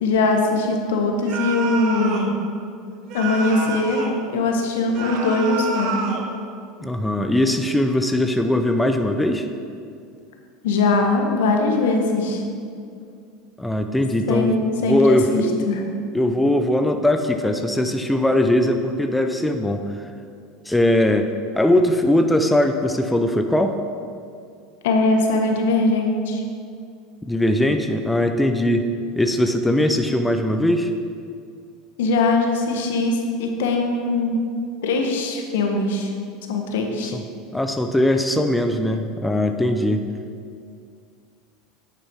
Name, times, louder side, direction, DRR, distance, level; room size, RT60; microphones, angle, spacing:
voice 1, 0.0-2.3 3.1-6.0 10.6-12.4 14.3-15.8 24.8-26.4 32.0-34.4 34.8-36.1 36.5-37.1, left 3 dB, 80° left, 2 dB, 1.3 m, -21 dB
sound 1, 1.3-2.3 3.1-4.2 4.9-6.3, right 5 dB, 55° right, 1.2 m, -29 dB
voice 2, 6.8-9.5 13.6-14.5 14.8-15.5 16.1-19.9 20.7-23.8 27.3-28.9 29.2-30.9 37.1-37.2 37.5-40.1, left 1 dB, 5° left, 6 dB, 0.6 m, -20 dB
9.4 x 6.7 x 4.7 m, 2.4 s
hypercardioid pair, 90°, 0 cm